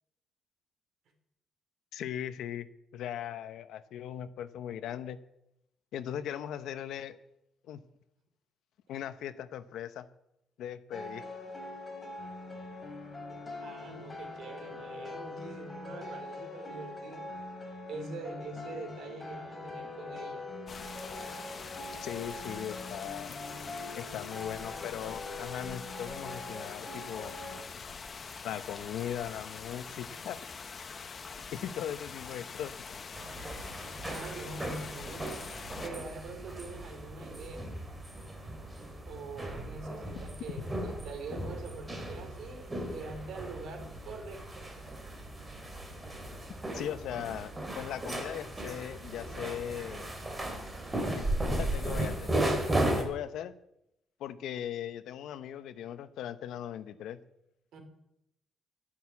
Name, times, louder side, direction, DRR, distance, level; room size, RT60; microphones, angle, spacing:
voice 1, 1.9-2.7 2.9-5.2 5.9-7.2 7.6-7.8 8.9-10.1 10.6-11.2 22.0-23.3 24.0-27.4 28.4-30.4 31.5-32.7 46.7-50.1 51.1-52.3 52.8-53.5 54.2-57.2, left 10 dB, 80° left, 11 dB, 0.9 m, -39 dB
sound 1, 10.9-27.6, left 2 dB, 20° left, 3.5 m, -43 dB
voice 2, 13.6-17.2 17.9-20.5 30.1-30.2 34.1-35.4 35.8-37.7 39.1-44.7 57.7-57.8, right 3 dB, 70° right, 4 dB, 3.6 m, -44 dB
sound 2, 20.7-35.9, left 5 dB, 35° left, 0.8 m, -44 dB
sound 3, 33.1-53.0, right 1 dB, 15° right, 2.7 m, -36 dB
11.5 x 11.0 x 8.4 m, 0.84 s
cardioid pair, 145°, 0 cm